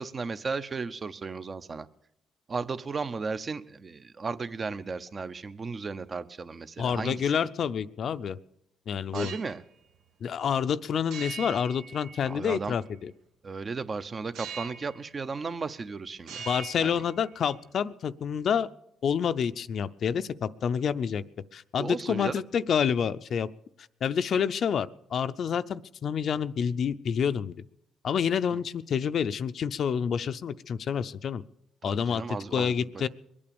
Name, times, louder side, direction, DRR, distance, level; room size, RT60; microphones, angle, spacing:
voice 1, 0.0-1.9 2.5-7.3 9.1-9.6 12.3-12.7 13.4-16.4 16.8-17.0 21.8-22.4 31.8-33.1, right 4 dB, 35° right, 13 dB, 0.8 m, -35 dB
voice 2, 6.8-8.4 8.9-9.3 10.2-13.1 16.5-18.7 19.0-21.2 21.5-23.5 24.0-27.6 28.0-31.4 31.8-33.1, left 7 dB, 60° left, 12 dB, 0.5 m, -28 dB
sound 1, 9.0-9.6 11.1-12.6 14.3-15.0 15.3-15.9 16.2-17.6, right 6 dB, 85° right, 1.4 m, -42 dB
22.0 x 8.7 x 7.0 m, 0.77 s
cardioid pair, 90°, 0 cm